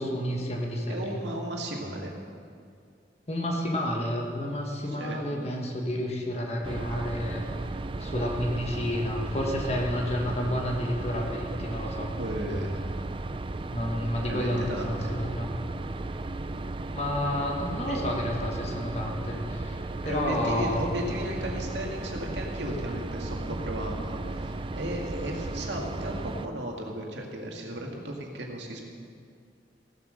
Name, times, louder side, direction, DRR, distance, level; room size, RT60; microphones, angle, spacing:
voice 1, 0.0-1.2 3.3-7.4 8.0-12.1 13.7-15.5 16.9-19.8 20.0-20.9, equal, 35° left, 0 dB, 1.4 m, -30 dB
voice 2, 0.9-2.1 4.8-5.2 12.1-12.9 14.2-15.2 17.8-18.0 20.0-28.8, right 1 dB, 85° right, 0 dB, 2.1 m, -35 dB
sound 1, 6.6-26.5, right 2 dB, 30° right, 0.4 m, -35 dB
16.0 x 7.9 x 6.5 m, 2.2 s
head